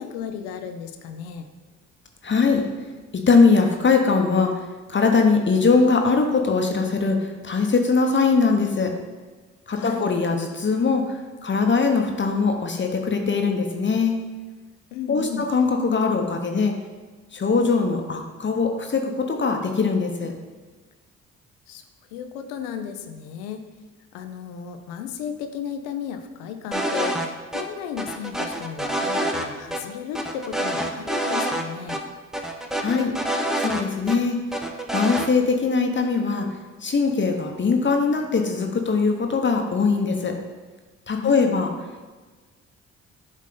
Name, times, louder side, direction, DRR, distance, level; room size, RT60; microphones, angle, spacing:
voice 1, 0.0-1.5 9.7-10.1 14.9-15.5 21.7-21.8 22.1-23.7 24.1-32.0 41.2-41.6, left 8 dB, 85° left, 7 dB, 0.6 m, -34 dB
voice 2, 2.2-2.6 3.1-4.5 4.9-8.9 9.7-14.2 15.1-16.7 17.3-20.3 32.8-33.1 33.6-34.4 34.9-36.5 36.8-40.3 41.1-41.7, left 4 dB, 35° left, 3 dB, 0.9 m, -21 dB
sound 1, 26.7-27.3 27.5-27.6 28.0-29.5 29.7-29.8 30.1-31.6 31.9-32.0 32.3-34.2 34.5-35.3, right 1 dB, ahead, 0.7 m, -26 dB
7.5 x 3.6 x 3.8 m, 1.3 s
hypercardioid pair, 50°, 34 cm